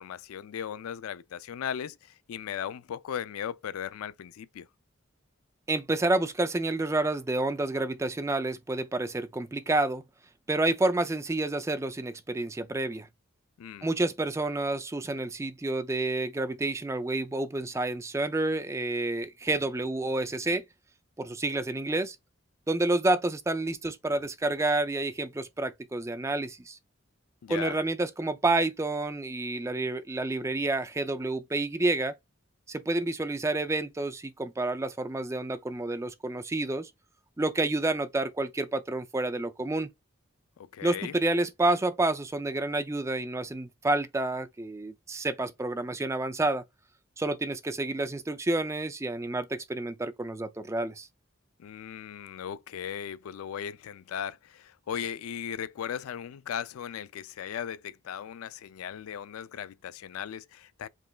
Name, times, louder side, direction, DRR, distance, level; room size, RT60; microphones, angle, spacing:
voice 1, 0.0-4.7 13.6-13.9 27.4-27.8 40.6-41.1 51.6-60.9, left 8 dB, 85° left, 0.3 m, -37 dB
voice 2, 5.7-10.0 10.5-13.1 13.8-20.6 21.2-22.2 22.7-26.8 27.5-32.1 32.7-36.9 37.4-39.9 40.8-46.6 47.2-51.1, right 2 dB, 15° right, 0.3 m, -29 dB
5.0 x 3.3 x 2.2 m
head